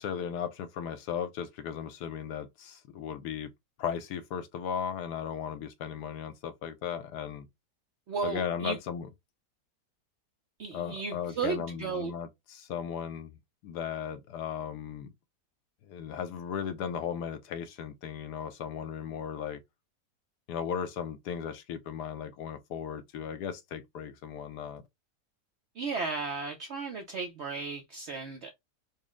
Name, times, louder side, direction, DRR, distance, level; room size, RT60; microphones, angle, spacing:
voice 1, 0.0-3.5 3.8-7.5 8.2-9.1 10.7-13.4 13.6-15.1 15.8-19.6 20.5-24.8, left 8 dB, 75° left, 1.2 m, -36 dB
voice 2, 8.1-8.8 10.6-12.1 25.7-28.5, right 4 dB, 70° right, 0.6 m, -34 dB
4.2 x 2.0 x 3.6 m
omnidirectional pair, 1.8 m